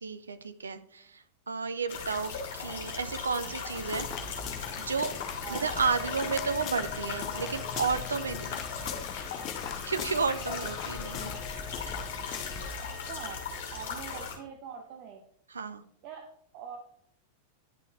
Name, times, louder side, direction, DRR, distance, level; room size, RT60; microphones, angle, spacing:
voice 1, 0.0-4.1 4.8-5.1 5.5-8.6 9.9-11.3 15.5-15.8, right 5 dB, 75° right, 11 dB, 0.5 m, -32 dB
sound 1, 1.9-14.4, left 5 dB, 50° left, 2.6 m, -38 dB
sound 2, 3.7-12.7, left 9 dB, 35° left, 0.5 m, -41 dB
Wind instrument woodwind instrument, 5.7-13.6, left 3 dB, 5° left, 1.7 m, -48 dB
voice 2, 12.9-13.4 13.7-15.2 16.0-16.8, right 7 dB, 45° right, 3 dB, 0.9 m, -43 dB
10.5 x 6.0 x 2.6 m, 0.65 s
figure-of-eight pair, 90°, 0 cm